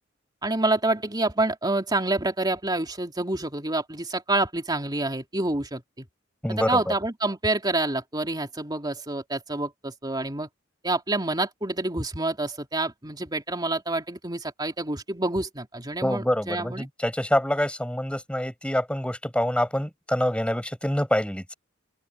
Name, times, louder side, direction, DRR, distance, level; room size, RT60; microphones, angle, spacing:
voice 1, 0.4-6.0 6.5-10.5 10.8-16.9, right 2 dB, 20° right, 3.0 m, -27 dB
voice 2, 6.4-6.9 16.0-21.5, left 1 dB, 5° left, 6.4 m, -26 dB
open air
head